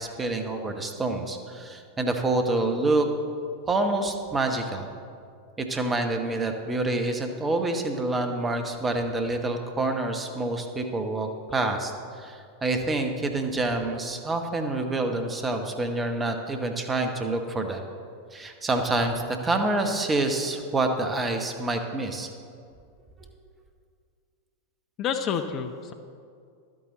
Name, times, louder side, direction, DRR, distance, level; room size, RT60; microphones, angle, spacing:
voice 1, 0.0-3.1 3.7-4.9 5.6-17.8 18.3-22.3, right 2 dB, 15° right, 5 dB, 1.0 m, -27 dB
voice 2, 25.0-25.9, left 7 dB, 35° left, 7 dB, 0.5 m, -29 dB
12.0 x 8.8 x 3.9 m, 2.3 s
figure-of-eight pair, 90°, 0 cm